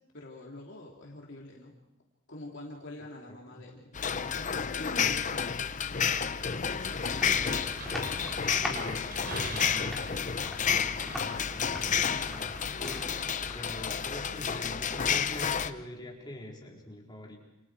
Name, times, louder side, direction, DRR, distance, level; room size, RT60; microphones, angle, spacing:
voice 1, 0.1-1.8 2.3-8.3, left 2 dB, 60° left, -2 dB, 3.2 m, -46 dB
sound 1, 3.9-15.7, left 7 dB, 40° left, 0.8 m, -31 dB
sound 2, 5.9-13.9, right 3 dB, 50° right, 3.4 m, -48 dB
sound 3, 6.2-13.9, left 1 dB, ahead, 5.4 m, -42 dB
voice 2, 8.5-9.1 9.3-10.0 10.6-12.5 13.5-17.4, left 1 dB, 20° left, -2 dB, 4.5 m, -44 dB
29.0 x 28.5 x 4.8 m, 0.93 s
head